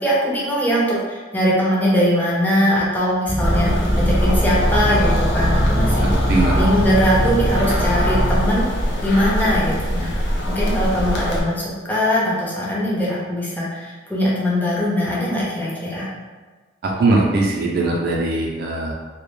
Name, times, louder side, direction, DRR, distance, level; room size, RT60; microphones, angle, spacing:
voice 1, 0.0-3.7 4.0-6.0 6.6-8.7 9.0-10.1 10.5-16.1, equal, 10° left, -6 dB, 0.5 m, -21 dB
sound 1, 3.2-8.4, equal, 30° left, 0.9 m, -22 dB
sound 2, 3.4-11.4, equal, 65° left, 0.5 m, -22 dB
voice 2, 6.0-6.6 16.8-18.9, right 2 dB, 55° right, -1 dB, 0.3 m, -20 dB
2.2 x 2.0 x 3.0 m, 1.3 s
head